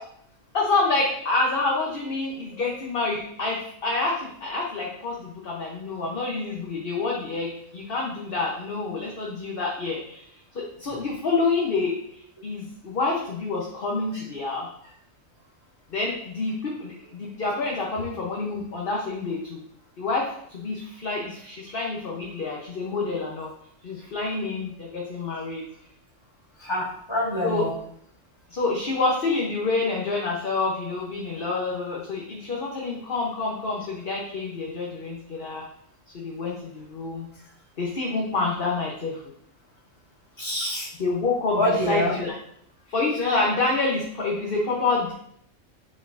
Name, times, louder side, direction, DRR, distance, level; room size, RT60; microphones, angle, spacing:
voice 1, 0.5-10.3 10.5-14.7 15.9-19.6 20.0-23.5 23.8-25.6 27.4-27.7 28.5-35.7 36.1-37.3 37.8-39.2 41.0-42.4 42.9-45.1, left 3 dB, 50° left, -3 dB, 1.1 m, -27 dB
voice 2, 26.6-27.7 40.4-40.9 41.5-42.1, left 1 dB, 20° left, -8 dB, 2.6 m, -25 dB
9.6 x 4.4 x 2.6 m, 0.67 s
omnidirectional pair, 1.3 m